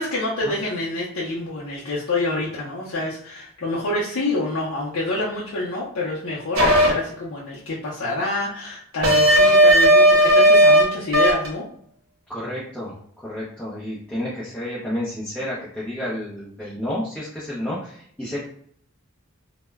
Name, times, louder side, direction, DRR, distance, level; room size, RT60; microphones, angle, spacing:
voice 1, 0.0-11.7, left 2 dB, 65° left, -6 dB, 0.5 m, -27 dB
sound 1, 6.6-6.9 9.0-10.8 11.1-11.5, right 1 dB, 70° right, 0.7 m, -14 dB
voice 2, 12.3-18.4, left 1 dB, 5° left, -10 dB, 0.5 m, -30 dB
2.1 x 2.0 x 3.3 m, 0.64 s
head